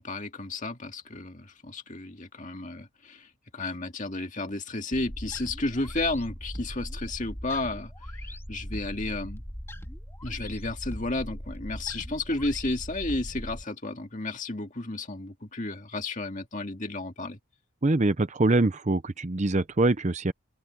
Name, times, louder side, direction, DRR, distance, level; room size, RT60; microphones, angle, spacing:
voice 1, 0.0-3.3 3.5-7.9 8.2-9.4 10.2-17.4, left 2 dB, 35° left, 2.2 m, -32 dB
sound 1, 4.9-13.6, equal, 10° left, 2.2 m, -39 dB
voice 2, 17.8-20.3, right 2 dB, 30° right, 0.6 m, -24 dB
open air
head